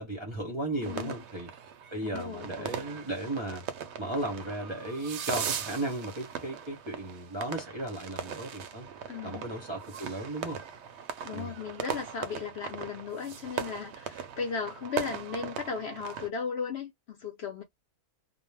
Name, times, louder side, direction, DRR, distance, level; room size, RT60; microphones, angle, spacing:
voice 1, 0.0-1.5 1.9-3.6 4.0-8.9 9.2-10.6 11.3-11.5, right 1 dB, 30° right, 0.5 m, -35 dB
voice 2, 0.8-1.2 2.0-2.8 9.1-9.5 11.2-17.6, left 6 dB, 60° left, 0.7 m, -36 dB
sound 1, 0.8-16.3, right 8 dB, 65° right, 0.7 m, -39 dB
2.4 x 2.1 x 3.1 m
omnidirectional pair, 1.5 m